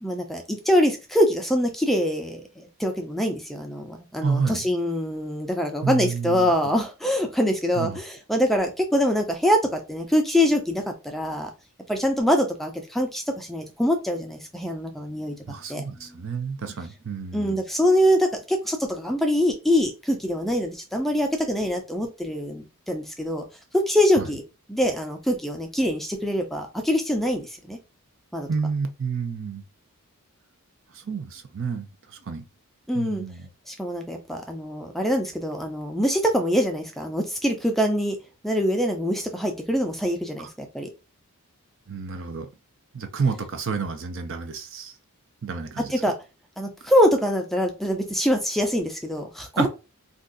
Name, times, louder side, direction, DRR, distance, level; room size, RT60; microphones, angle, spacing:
voice 1, 0.0-11.5 11.9-15.4 15.7-16.2 17.3-23.4 23.7-24.4 24.7-27.8 28.3-28.5 32.9-33.2 33.7-38.2 38.4-40.9 45.9-46.1 46.6-49.7, equal, ahead, 0.4 m, -24 dB
voice 2, 4.2-4.7 5.8-6.5 7.8-8.0 15.5-17.6 24.2-24.3 28.5-29.6 30.9-32.4 32.9-33.5 40.4-40.5 41.9-42.5 42.9-44.9 45.4-45.9 49.6-49.7, right 5 dB, 60° right, 0.5 m, -29 dB
2.6 x 2.3 x 3.7 m
head